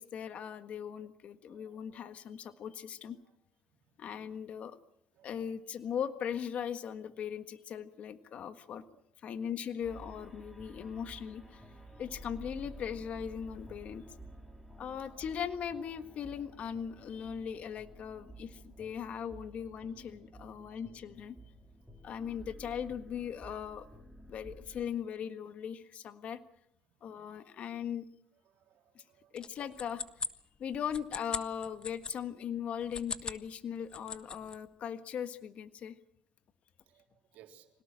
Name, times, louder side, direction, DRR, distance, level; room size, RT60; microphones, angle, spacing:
voice 1, 0.0-3.2 4.0-4.8 5.2-8.8 9.2-11.6 12.0-14.0 14.8-21.3 22.0-23.9 24.3-26.4 27.0-28.1 28.9-29.0 29.3-30.0 30.6-35.9, left 8 dB, 55° left, 10 dB, 1.6 m, -39 dB
voice 2, 1.5-2.0 3.2-3.3 5.2-5.6 9.3-9.5 28.5-29.4 36.9-37.7, right 10 dB, 70° right, 4 dB, 3.6 m, -62 dB
sound 1, 9.8-24.9, right 1 dB, 5° left, 4.9 m, -52 dB
sound 2, 29.4-32.2 32.8-33.4 33.8-34.6, left 5 dB, 35° left, 1.4 m, -40 dB
25.5 x 18.0 x 7.6 m, 0.77 s
cardioid pair, 100°, 3 cm